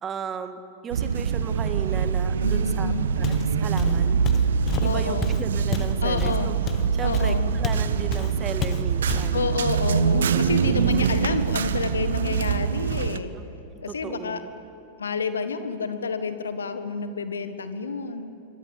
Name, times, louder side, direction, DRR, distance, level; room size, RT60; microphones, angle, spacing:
voice 1, 0.0-3.2 3.6-4.2 4.8-6.5 6.9-9.7 10.3-10.4 13.4-13.5 13.7-14.5, right 6 dB, 25° right, 10 dB, 1.7 m, -35 dB
sound 1, 0.9-13.2, right 7 dB, 65° right, 0.9 m, -24 dB
voice 2, 2.4-3.0 4.8-5.3 6.0-6.5 7.0-7.5 9.3-13.3 13.8-14.4 15.0-18.3, left 5 dB, 70° left, 10 dB, 1.6 m, -29 dB
Walk footsteps, 3.2-3.5 3.8-7.9 8.1-8.3 8.6-9.3, left 9 dB, 30° left, 1.2 m, -31 dB
26.5 x 23.5 x 8.3 m, 2.8 s
figure-of-eight pair, 90°, 0 cm